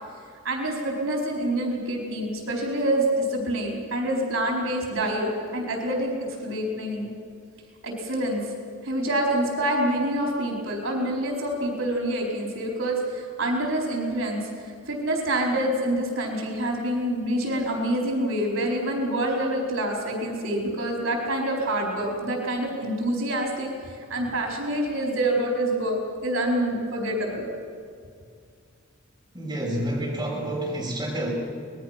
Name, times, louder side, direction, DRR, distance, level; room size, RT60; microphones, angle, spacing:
voice 1, 0.4-6.1 6.4-7.1 7.8-8.4 8.8-14.4 14.9-27.4, right 1 dB, 80° right, 0 dB, 4.5 m, -26 dB
voice 2, 29.3-31.3, right 1 dB, 20° right, -4 dB, 6.4 m, -29 dB
26.5 x 20.5 x 6.0 m, 2.3 s
head